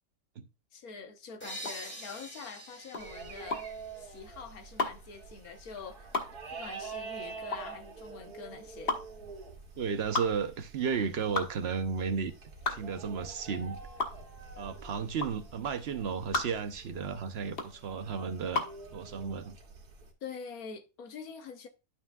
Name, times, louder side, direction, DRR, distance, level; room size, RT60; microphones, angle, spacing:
voice 1, 0.7-3.7 4.0-6.1 6.5-9.0 20.2-21.7, left 5 dB, 65° left, 1.5 m, -45 dB
sound 1, 1.4-5.0, equal, 5° left, 2.0 m, -46 dB
sound 2, 1.6-18.8, left 3 dB, 40° left, 1.2 m, -36 dB
sound 3, 3.0-20.1, right 4 dB, 70° right, 2.1 m, -47 dB
voice 2, 9.8-12.3 12.7-13.8 14.6-18.6 18.9-19.6, right 6 dB, 55° right, 0.8 m, -33 dB
11.5 x 5.8 x 2.3 m
omnidirectional pair, 1.7 m